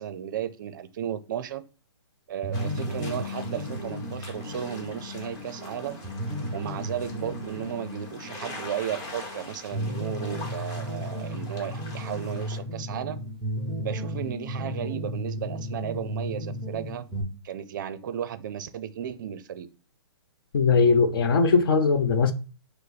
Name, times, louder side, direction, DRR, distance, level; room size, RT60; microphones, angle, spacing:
voice 1, 0.0-1.6 2.3-6.0 6.5-13.2 13.8-17.0 17.4-19.7, right 9 dB, 45° right, 0.5 m, -34 dB
sound 1, 2.4-17.2, equal, ahead, 0.6 m, -34 dB
sound 2, 2.5-12.6, left 2 dB, 25° left, 1.1 m, -44 dB
voice 2, 20.5-22.3, left 5 dB, 55° left, 0.7 m, -20 dB
5.3 x 2.0 x 4.0 m
hypercardioid pair, 155°, 15 cm